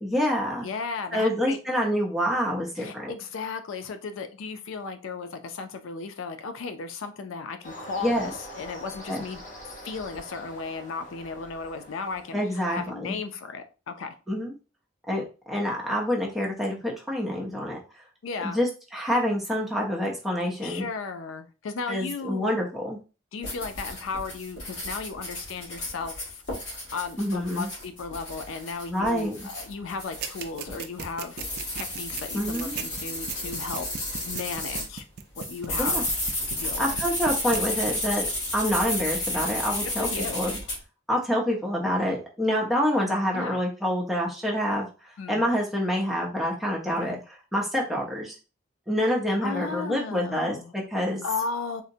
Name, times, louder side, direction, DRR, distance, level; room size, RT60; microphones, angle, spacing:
voice 1, 0.0-0.7 1.1-3.1 8.0-8.3 9.1-9.2 12.3-13.2 14.3-14.6 15.1-17.8 18.4-20.8 21.9-23.0 27.2-27.7 28.9-29.5 32.3-32.8 35.8-36.0 36.8-40.6 41.1-48.4 48.9-51.2, equal, ahead, -2 dB, 0.6 m, -27 dB
voice 2, 0.6-1.6 2.8-9.4 9.8-14.2 18.2-18.6 20.6-22.6 23.3-26.4 26.9-35.0 35.4-36.1 36.5-37.0 40.0-40.5 43.3-43.6 45.2-45.4 47.0-47.2 49.0-49.1 49.4-50.7 51.2-51.8, left 4 dB, 85° left, 8 dB, 0.4 m, -35 dB
sound 1, 7.6-12.9, equal, 40° left, 0.9 m, -44 dB
sound 2, 23.4-34.9 35.4-40.8, left 1 dB, 65° left, 1.5 m, -32 dB
sound 3, 30.2-36.7 37.0-37.6 37.9-38.0, right 7 dB, 50° right, 0.3 m, -36 dB
3.7 x 2.1 x 2.6 m, 0.33 s
head